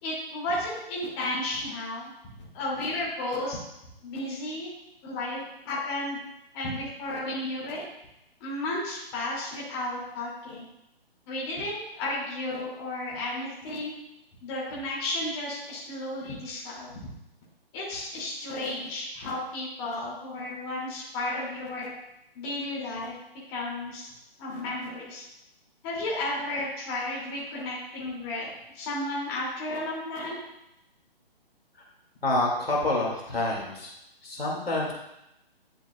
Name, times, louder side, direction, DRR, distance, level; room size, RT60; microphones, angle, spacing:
voice 1, 0.0-2.1 2.4-3.6 4.0-4.7 5.0-6.2 6.5-7.8 8.4-10.7 11.3-13.9 14.4-17.0 17.7-21.9 22.3-23.1 23.5-24.1 24.4-25.2 25.8-28.5 28.7-30.4, left 1 dB, 25° left, -6 dB, 2.5 m, -33 dB
voice 2, 32.2-33.9 34.2-34.9, left 2 dB, 75° left, -2 dB, 2.2 m, -27 dB
10.5 x 5.0 x 2.3 m, 0.85 s
figure-of-eight pair, 140°, 30 cm